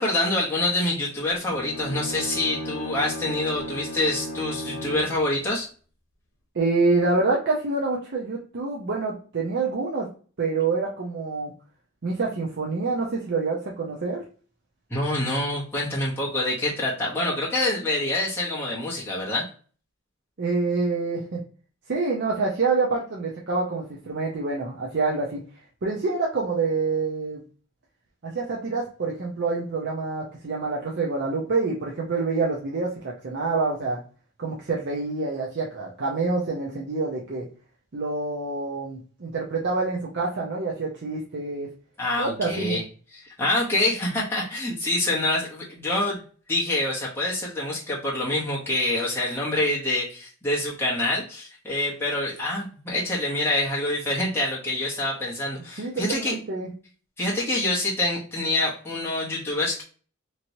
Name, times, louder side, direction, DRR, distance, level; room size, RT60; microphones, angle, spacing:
voice 1, 0.0-5.7 14.9-19.5 42.0-42.8 43.1-46.2 46.5-56.4 57.2-59.8, left 1 dB, 10° left, -5 dB, 0.9 m, -26 dB
Bowed string instrument, 1.4-5.2, left 1 dB, 65° left, 1.0 m, -34 dB
voice 2, 6.5-10.1 10.4-11.5 12.0-14.2 20.4-21.4 21.9-25.4 25.8-27.4 28.2-34.0 34.4-37.5 37.9-41.7 42.2-42.8 55.8-56.7, right 3 dB, 55° right, -3 dB, 0.6 m, -26 dB
3.0 x 2.9 x 2.6 m, 0.40 s
head